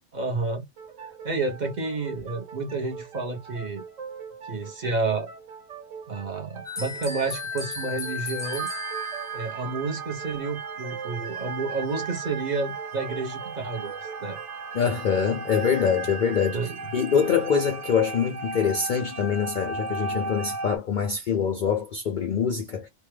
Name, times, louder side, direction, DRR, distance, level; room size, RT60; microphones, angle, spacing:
voice 1, 0.1-0.6 1.1-3.8 4.4-5.3 6.1-8.7 9.3-14.4 16.5-16.9, right 3 dB, 40° right, 0.8 m, -30 dB
sound 1, 0.8-16.1, right 6 dB, 85° right, 1.4 m, -43 dB
sound 2, 6.6-9.5, left 3 dB, 5° left, 0.8 m, -34 dB
sound 3, 8.4-20.8, right 4 dB, 70° right, 0.9 m, -35 dB
voice 2, 14.7-16.6 16.9-22.9, left 6 dB, 60° left, 0.5 m, -24 dB
3.0 x 2.2 x 3.1 m
omnidirectional pair, 1.3 m